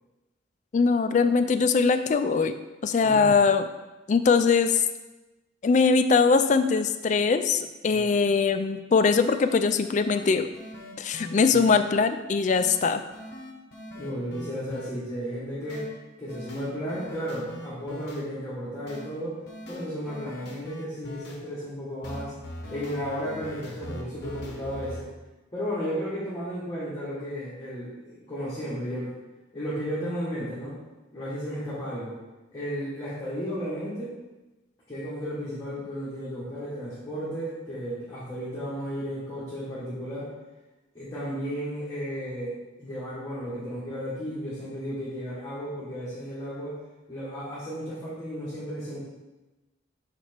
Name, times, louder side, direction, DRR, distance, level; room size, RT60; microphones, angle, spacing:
voice 1, 0.7-2.5 2.8-3.7 4.1-4.8 5.6-10.5 11.0-13.0, left 5 dB, 40° left, 9 dB, 0.3 m, -22 dB
voice 2, 3.0-3.4 7.9-8.2 13.9-15.9 16.2-19.4 19.7-22.3 22.7-25.1 25.5-29.1 29.5-30.8 31.1-32.2 32.5-34.2 34.9-40.3 40.9-46.8 47.1-49.0, equal, 20° left, -10 dB, 1.4 m, -34 dB
sound 1, 9.4-9.6 9.9-11.7 12.5-12.7 13.1-14.9 15.7-15.9 16.3-18.2 18.9-19.1 19.5-21.4 22.0-25.0, left 1 dB, 55° left, 0.9 m, -41 dB
5.9 x 4.4 x 4.3 m, 1.1 s
head